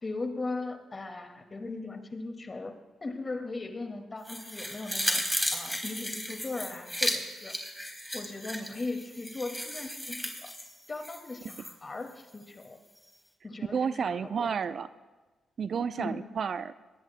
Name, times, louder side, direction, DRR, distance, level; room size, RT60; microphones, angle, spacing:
voice 1, 0.0-2.7 3.0-5.2 5.5-7.6 8.1-10.5 10.9-12.8 13.4-14.5 16.0-16.2, left 3 dB, 35° left, 5 dB, 2.1 m, -38 dB
sound 1, 4.3-11.7 12.1-12.2, equal, 5° left, 3.5 m, -34 dB
voice 2, 13.7-14.9 15.6-16.7, right 6 dB, 60° right, 14 dB, 0.5 m, -31 dB
24.0 x 19.5 x 2.2 m, 1.2 s
hypercardioid pair, 40°, 0 cm